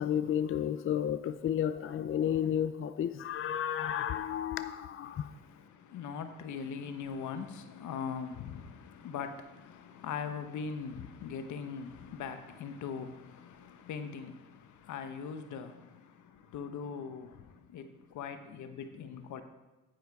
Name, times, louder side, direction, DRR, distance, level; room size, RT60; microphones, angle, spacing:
voice 1, 0.0-5.3, left 9 dB, 45° left, 11 dB, 0.5 m, -32 dB
voice 2, 5.1-19.4, left 6 dB, 75° left, 8 dB, 1.0 m, -41 dB
9.8 x 8.8 x 4.7 m, 1.1 s
cardioid pair, 90°, 30 cm